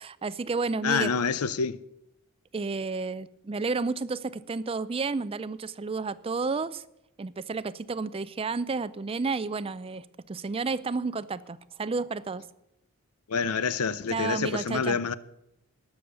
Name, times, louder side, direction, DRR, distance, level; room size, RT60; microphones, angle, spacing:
voice 1, 0.0-1.1 2.5-6.8 7.2-12.4 14.1-15.0, right 4 dB, 25° right, 0.4 m, -31 dB
voice 2, 0.8-1.8 13.3-15.1, left 5 dB, 85° left, 0.6 m, -27 dB
18.5 x 7.0 x 6.5 m
head